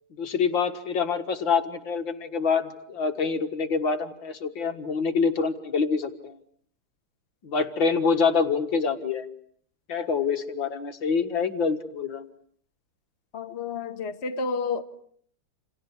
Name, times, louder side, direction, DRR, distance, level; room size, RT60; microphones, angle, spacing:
voice 1, 0.2-6.4 7.4-9.3 9.9-12.3, left 5 dB, 60° left, 2.4 m, -26 dB
voice 2, 13.3-14.8, left 4 dB, 35° left, 1.6 m, -30 dB
29.0 x 28.0 x 7.2 m
omnidirectional pair, 2.4 m